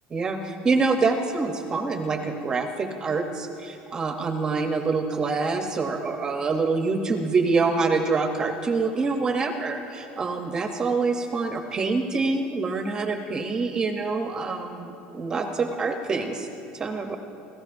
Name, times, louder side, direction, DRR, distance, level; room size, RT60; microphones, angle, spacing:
voice 1, 0.1-16.5 16.7-17.2, right 4 dB, 25° right, 5 dB, 0.8 m, -26 dB
27.0 x 13.5 x 2.6 m, 2.9 s
cardioid pair, 145°, 3 cm